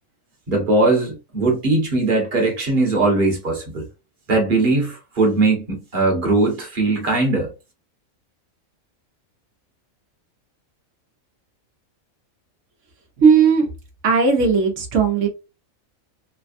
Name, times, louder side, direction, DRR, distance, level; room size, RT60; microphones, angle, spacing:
voice 1, 0.5-3.8 4.3-7.5, right 2 dB, 40° right, 1.3 m, -19 dB
voice 2, 13.2-13.7 14.0-15.3, right 5 dB, 65° right, 1.1 m, -16 dB
3.3 x 2.2 x 2.5 m
omnidirectional pair, 1.4 m